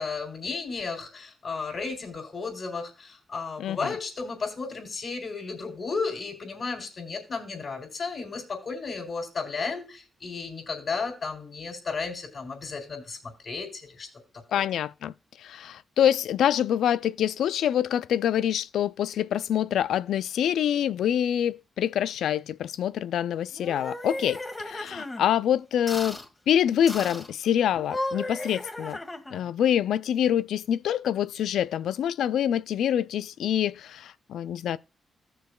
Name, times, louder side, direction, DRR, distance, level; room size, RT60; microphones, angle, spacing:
voice 1, 0.0-13.2 13.4-14.1 14.5-14.6, left 4 dB, 55° left, 3.8 m, -34 dB
voice 2, 3.6-3.9 14.5-15.1 15.4-26.2 26.5-29.0 29.3-34.8, left 10 dB, 80° left, 0.3 m, -26 dB
sound 1, 23.5-25.2 25.9-26.3 26.9-27.3 27.8-29.5, left 1 dB, 25° left, 1.5 m, -35 dB
15.0 x 6.6 x 2.3 m
supercardioid pair, 50°, 0 cm